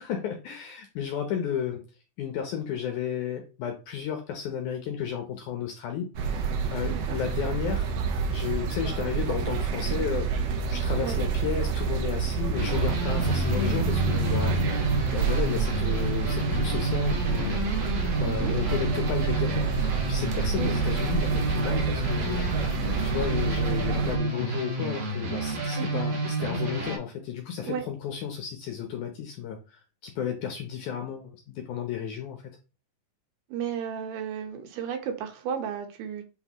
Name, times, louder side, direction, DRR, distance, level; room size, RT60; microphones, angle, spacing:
voice 1, 0.0-1.8 2.2-7.9 8.3-14.8 15.1-17.8 18.2-32.5, left 8 dB, 75° left, 4 dB, 1.8 m, -33 dB
sound 1, 6.2-24.2, right 5 dB, 70° right, 2.4 m, -28 dB
voice 2, 6.9-7.2 11.0-11.2 18.2-18.5 20.6-20.7 25.8-26.0 27.6-27.8 33.5-36.3, right 8 dB, 85° right, 5 dB, 3.1 m, -33 dB
sound 2, 12.5-27.0, right 1 dB, 45° right, 3.6 m, -30 dB
9.4 x 3.9 x 3.0 m, 0.33 s
omnidirectional pair, 4.4 m